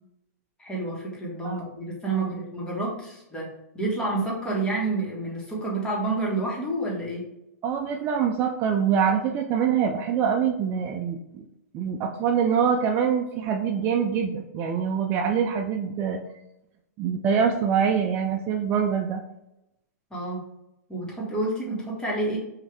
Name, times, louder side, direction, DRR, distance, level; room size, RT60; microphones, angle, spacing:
voice 1, 0.6-3.5 3.7-7.2 20.1-20.4 20.9-22.4, right 2 dB, 10° left, -4 dB, 1.4 m, -29 dB
voice 2, 2.1-2.4 7.6-11.4 11.7-16.2 17.0-19.2, right 7 dB, 25° right, 2 dB, 0.4 m, -25 dB
5.6 x 2.6 x 3.4 m, 0.88 s
hypercardioid pair, 145°, 9 cm